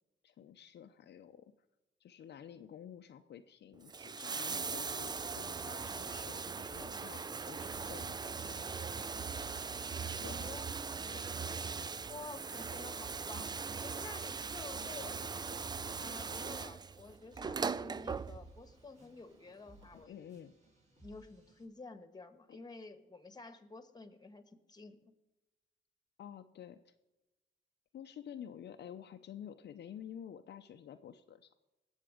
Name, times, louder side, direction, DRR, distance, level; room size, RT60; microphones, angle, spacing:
voice 1, 0.2-1.4 2.0-9.2 10.1-10.5 11.1-11.2 19.9-20.5 22.5-22.6 26.2-26.9 27.9-31.5, left 9 dB, 60° left, 6 dB, 0.7 m, -51 dB
Bathtub (filling or washing), 3.7-18.7 19.8-19.9, right 5 dB, 20° right, 0.4 m, -40 dB
sound 1, 6.6-7.9 8.3-8.5 9.3-9.8 10.3-11.2 12.0-13.3 13.6-14.1 14.4-21.7, right 1 dB, 40° right, 5.7 m, -62 dB
voice 2, 10.2-10.9 12.1-20.2 21.0-25.0, left 3 dB, 20° left, 10 dB, 1.4 m, -51 dB
19.0 x 7.4 x 5.0 m, 1.1 s
cardioid pair, 90°, 20 cm